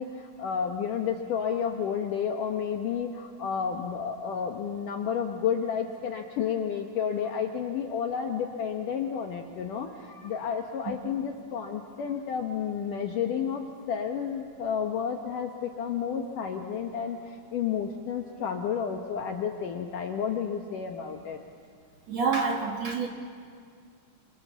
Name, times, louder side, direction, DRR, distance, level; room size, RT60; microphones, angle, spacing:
voice 1, 0.0-21.4, left 7 dB, 75° left, 3 dB, 2.0 m, -31 dB
voice 2, 22.1-23.1, right 5 dB, 60° right, 2 dB, 1.8 m, -27 dB
27.5 x 27.0 x 7.3 m, 2.1 s
omnidirectional pair, 5.3 m